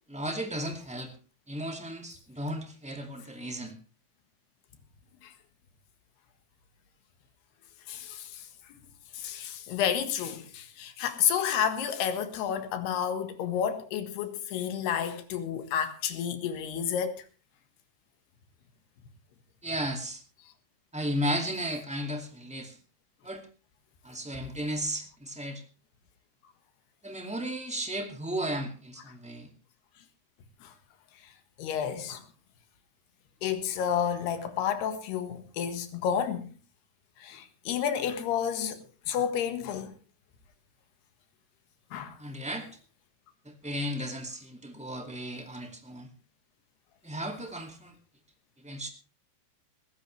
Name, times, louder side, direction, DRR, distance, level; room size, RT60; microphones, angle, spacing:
voice 1, 0.1-1.1 1.5-3.8 19.6-20.2 20.9-22.8 23.2-23.4 24.0-25.6 27.0-29.5 42.2-42.7 43.4-46.1 47.0-47.9 48.6-48.9, equal, 5° right, 1.0 m, -34 dB
voice 2, 7.9-8.4 9.1-17.3 30.6-30.7 31.6-32.2 33.4-36.5 37.2-39.9 41.9-42.2, left 8 dB, 90° left, 3.7 m, -30 dB
19.5 x 15.5 x 3.3 m
omnidirectional pair, 4.5 m